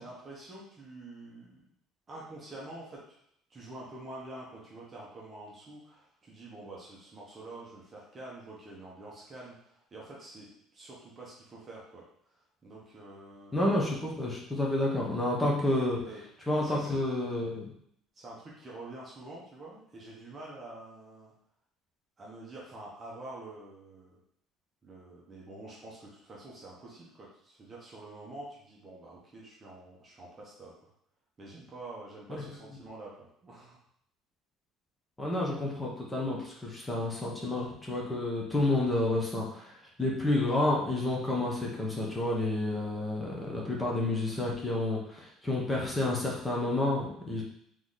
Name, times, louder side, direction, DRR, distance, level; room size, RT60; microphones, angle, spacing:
voice 1, 0.0-1.6 2.1-3.2 3.5-12.1 12.6-13.5 16.0-16.2 16.6-17.0 18.1-21.3 22.2-24.2 24.8-30.7 31.4-33.8, right 2 dB, 20° right, -5 dB, 0.9 m, -47 dB
voice 2, 13.5-16.0 16.5-17.7 32.3-32.5 35.2-47.4, left 2 dB, 10° left, -3 dB, 1.0 m, -30 dB
3.9 x 3.1 x 3.9 m, 0.69 s
cardioid pair, 170°, 0 cm